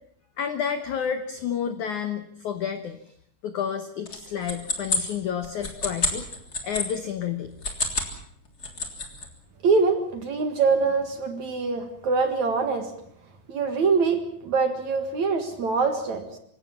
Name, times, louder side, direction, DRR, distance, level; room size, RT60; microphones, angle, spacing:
voice 1, 0.4-3.0 3.4-6.2 6.6-7.5, left 8 dB, 85° left, 9 dB, 1.7 m, -30 dB
sound 1, 4.1-6.9 7.5-8.1 8.5-9.3, left 3 dB, 25° left, 3.2 m, -29 dB
voice 2, 9.6-12.9 13.5-16.2, right 4 dB, 55° right, 7 dB, 2.4 m, -24 dB
27.0 x 17.0 x 7.2 m, 0.69 s
omnidirectional pair, 5.2 m